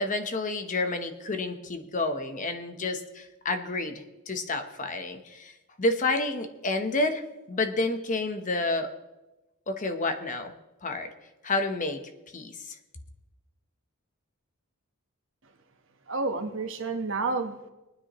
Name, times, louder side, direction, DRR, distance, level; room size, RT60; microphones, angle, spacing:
voice 1, 0.0-5.5 5.8-7.2 7.5-8.9 9.7-10.5 10.8-11.1 11.4-12.0 12.3-12.5, left 2 dB, 35° left, 7 dB, 0.9 m, -29 dB
voice 2, 16.1-17.7, right 3 dB, 65° right, 5 dB, 1.3 m, -30 dB
22.0 x 9.6 x 3.1 m, 1.0 s
head